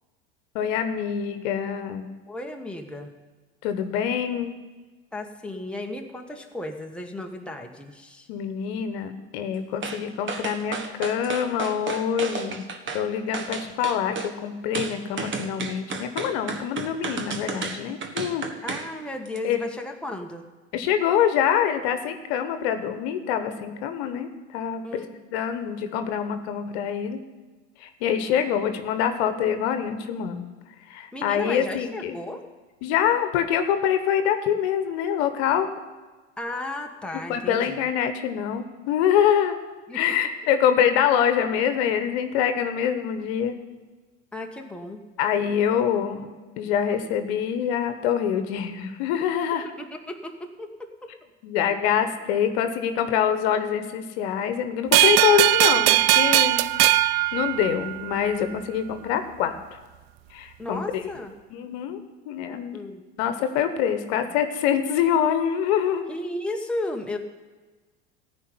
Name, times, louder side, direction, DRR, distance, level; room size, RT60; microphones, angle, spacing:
voice 1, 0.5-2.1 3.6-4.5 8.3-12.6 12.9-18.5 19.4-19.7 20.7-25.0 25.3-27.2 27.8-30.5 30.9-32.2 32.8-35.7 37.3-39.5 39.9-43.6 45.2-46.3 46.6-49.7 51.4-56.7 57.0-59.5 60.3-61.0 61.5-62.0 62.2-62.8 63.2-66.1, left 9 dB, 65° left, 9 dB, 1.2 m, -25 dB
voice 2, 2.3-3.1 5.1-8.3 18.6-20.4 24.8-25.1 31.1-32.4 36.4-37.8 39.9-40.1 44.3-45.0 49.8-50.9 60.6-61.3 62.7-63.0 66.1-67.2, left 1 dB, 5° left, 2 dB, 1.5 m, -34 dB
sound 1, 9.8-10.0 10.3-13.0 13.3-14.3 14.7-18.9 19.2-19.4, right 4 dB, 35° right, 1.5 m, -32 dB
sound 2, 54.9-58.2, right 18 dB, 55° right, 0.5 m, -19 dB
15.0 x 5.2 x 9.6 m, 1.3 s
hypercardioid pair, 85°, 35 cm